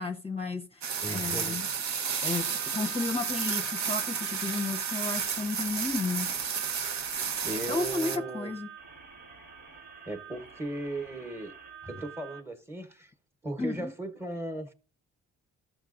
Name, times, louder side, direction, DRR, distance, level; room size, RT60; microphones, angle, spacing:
voice 1, 0.0-1.7 2.2-6.3 7.7-8.7 13.6-13.9, left 3 dB, 20° left, 0.7 m, -33 dB
sound 1, 0.8-8.2, right 6 dB, 65° right, 0.8 m, -32 dB
voice 2, 1.0-1.6 7.4-8.5 10.0-11.5 11.8-13.1 13.4-14.7, right 2 dB, 10° right, 1.1 m, -37 dB
sound 2, 2.4-12.4, right 6 dB, 85° right, 2.0 m, -48 dB
13.5 x 6.3 x 2.5 m
cardioid pair, 90°, 30 cm